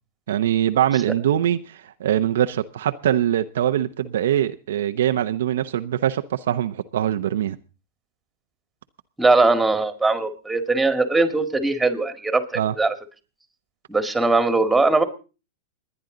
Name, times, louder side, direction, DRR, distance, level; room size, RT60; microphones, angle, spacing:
voice 1, 0.3-7.6 12.6-12.7, right 11 dB, 75° right, 0.8 m, -22 dB
voice 2, 9.2-12.9 13.9-15.0, right 3 dB, 5° right, 2.1 m, -20 dB
28.5 x 10.0 x 3.9 m
hypercardioid pair, 115°, 0 cm